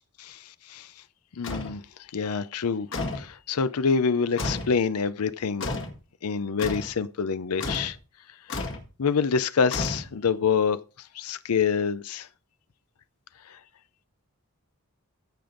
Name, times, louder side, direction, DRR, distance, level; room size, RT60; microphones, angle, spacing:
voice 1, 1.4-1.8 2.1-2.9 3.1-5.7 6.2-8.0 9.0-10.8 11.1-12.3 13.5-13.6, left 5 dB, 80° left, 0.6 m, -26 dB
sound 1, 1.4-1.8 2.9-3.3 4.4-4.8 5.6-6.0 6.6-6.9 7.6-8.0 8.5-8.9 9.7-10.4, left 2 dB, 60° left, 1.8 m, -32 dB
15.0 x 5.2 x 3.9 m
head